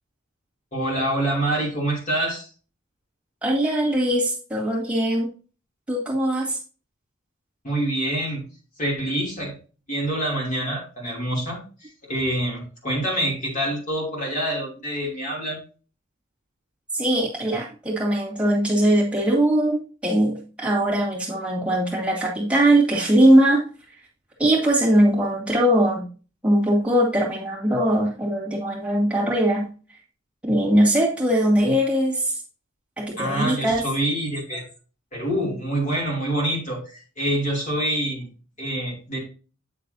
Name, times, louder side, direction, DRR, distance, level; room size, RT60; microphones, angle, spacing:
voice 1, 0.7-2.5 7.6-8.5 8.8-9.6 9.9-11.6 12.0-15.6 33.2-34.7 35.1-38.3 38.6-39.2, right 1 dB, 40° left, -1 dB, 2.9 m, -26 dB
voice 2, 3.4-5.3 5.9-6.6 16.9-23.6 24.4-26.1 26.4-29.7 30.4-32.4 33.0-33.8, right 1 dB, 5° right, -3 dB, 2.2 m, -21 dB
8.6 x 6.6 x 2.7 m, 0.35 s
head